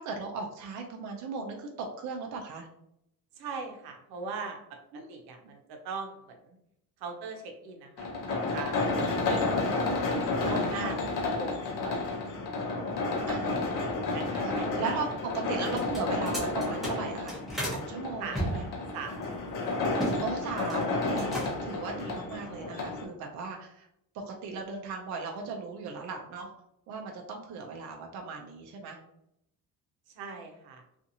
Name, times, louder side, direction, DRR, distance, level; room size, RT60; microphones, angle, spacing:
voice 1, 0.0-2.7 4.9-5.2 9.0-9.3 10.7-11.0 13.3-13.7 14.4-15.1 15.3-17.4 17.7-18.7 20.2-23.9 24.1-26.5 26.9-29.0, right 4 dB, 50° right, 1 dB, 0.4 m, -37 dB
voice 2, 3.4-4.6 4.9-6.6 7.0-8.8 9.3-9.4 10.4-12.3 13.2-13.3 14.1-15.0 18.2-18.4 18.9-19.6 30.2-30.8, right 4 dB, 80° right, 3 dB, 0.7 m, -40 dB
sound 1, 8.0-23.0, left 3 dB, 60° left, 0.7 m, -31 dB
sound 2, 15.7-17.8 18.3-20.2 20.5-20.9 21.2-21.8, equal, ahead, 0.7 m, -34 dB
2.7 x 2.5 x 2.6 m, 0.78 s
cardioid pair, 180°, 37 cm